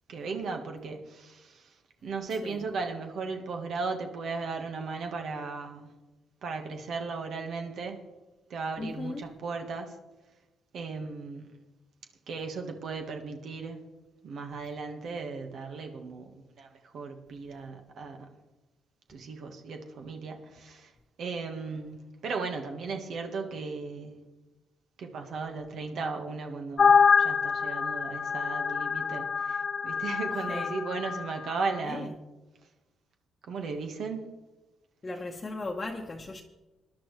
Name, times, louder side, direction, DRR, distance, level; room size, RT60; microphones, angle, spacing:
voice 1, 0.1-1.7 2.0-5.9 6.4-8.0 8.5-9.9 10.7-11.5 12.3-13.8 14.2-18.3 19.1-20.9 21.2-24.2 25.0-32.2 33.5-34.2, right 4 dB, 65° right, 4 dB, 1.5 m, -36 dB
voice 2, 2.3-2.7 8.8-9.3 30.5-30.8 31.8-32.1 35.0-36.4, left 2 dB, 30° left, -1 dB, 1.1 m, -37 dB
sound 1, 26.8-31.3, left 6 dB, 45° left, 0.5 m, -25 dB
20.5 x 11.0 x 3.3 m, 1.1 s
cardioid pair, 90°, 0 cm